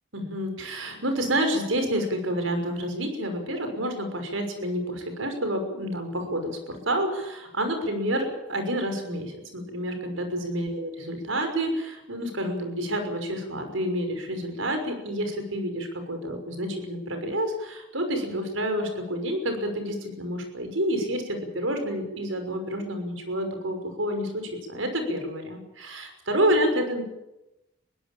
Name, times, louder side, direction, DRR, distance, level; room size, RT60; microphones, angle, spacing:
voice 1, 0.1-27.0, equal, 90° right, 6 dB, 6.1 m, -29 dB
23.0 x 17.0 x 8.9 m, 0.92 s
head